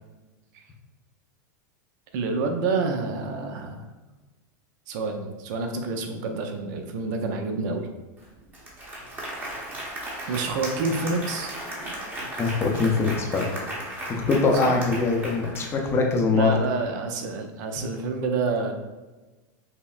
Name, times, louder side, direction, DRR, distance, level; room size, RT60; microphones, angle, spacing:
voice 1, 2.1-3.9 4.9-7.9 10.3-11.6 14.6-14.8 16.3-18.7, right 3 dB, 60° right, 5 dB, 0.5 m, -28 dB
Applause, 8.2-8.3 8.5-16.1, right 1 dB, 15° right, 0.9 m, -35 dB
voice 2, 12.4-13.5 14.1-16.5 17.8-17.9, left 4 dB, 25° left, 1 dB, 0.6 m, -23 dB
5.5 x 2.0 x 2.4 m, 1.2 s
supercardioid pair, 125°, 11 cm